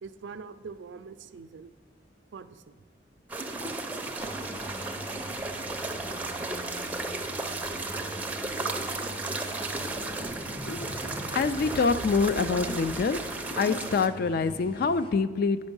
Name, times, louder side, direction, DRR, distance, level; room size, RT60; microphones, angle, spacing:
voice 1, 0.0-1.7 2.3-2.7, right 5 dB, 75° right, 12 dB, 0.4 m, -43 dB
sound 1, 3.3-14.1, right 2 dB, 10° right, 0.5 m, -34 dB
sound 2, 4.2-15.1, equal, 30° left, 0.9 m, -43 dB
voice 2, 10.7-13.2 13.5-15.7, left 4 dB, 55° left, 12 dB, 0.3 m, -26 dB
8.9 x 5.2 x 5.4 m, 1.5 s
head